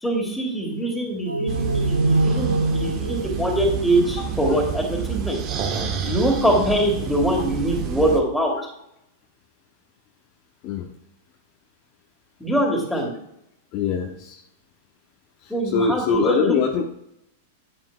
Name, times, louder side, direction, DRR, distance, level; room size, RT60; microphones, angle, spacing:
voice 1, 0.0-5.4 6.0-8.5 12.4-13.1 15.5-16.5, right 1 dB, 5° left, 0 dB, 2.5 m, -23 dB
sound 1, 1.3-4.7, right 2 dB, 90° right, 0.4 m, -24 dB
sound 2, 1.5-8.2, right 7 dB, 35° right, 1.3 m, -29 dB
voice 2, 13.7-14.4 15.4-16.9, left 5 dB, 40° left, 3 dB, 0.8 m, -23 dB
9.1 x 8.6 x 2.3 m, 0.78 s
figure-of-eight pair, 95°, 0 cm